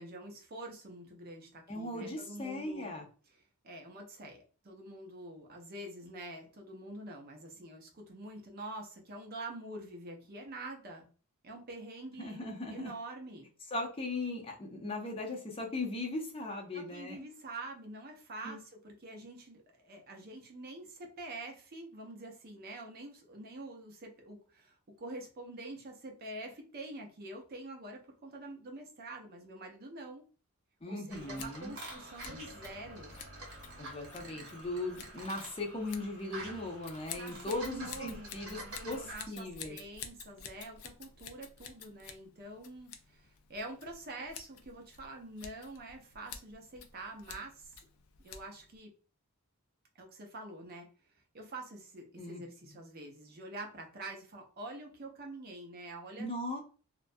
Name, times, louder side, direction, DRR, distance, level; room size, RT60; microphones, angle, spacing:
voice 1, 0.0-2.9 3.3-11.1 11.4-13.5 16.7-30.2 30.9-33.1 37.2-47.8 48.2-48.9 50.0-50.9 51.3-56.3, right 2 dB, 45° right, 1 dB, 0.5 m, -46 dB
voice 2, 1.7-3.0 12.2-12.9 13.7-17.3 18.4-18.6 30.8-31.7 33.8-39.8 52.2-52.8 56.2-56.6, left 2 dB, 25° left, 0 dB, 0.5 m, -38 dB
sound 1, 31.1-39.1, right 1 dB, 75° right, 1.0 m, -48 dB
Scissors, 31.3-48.8, left 7 dB, 80° left, 0.4 m, -51 dB
2.3 x 2.1 x 2.5 m, 0.38 s
head